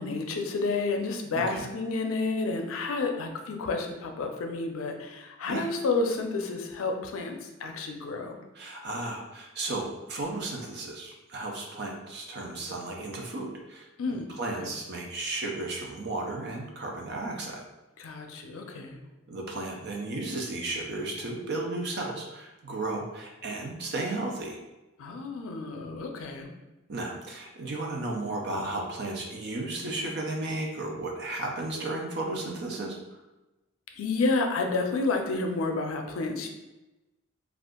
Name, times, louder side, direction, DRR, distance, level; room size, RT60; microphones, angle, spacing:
voice 1, 0.0-7.4 7.6-8.3 14.0-14.3 14.6-14.7 18.0-19.0 25.0-26.5 34.0-36.5, left 3 dB, 90° left, 4 dB, 0.5 m, -30 dB
voice 2, 1.3-1.7 5.5-5.7 8.5-13.9 14.4-17.6 19.3-24.6 26.9-33.0, right 2 dB, 55° right, 1 dB, 0.6 m, -34 dB
2.6 x 2.4 x 3.6 m, 1.0 s
head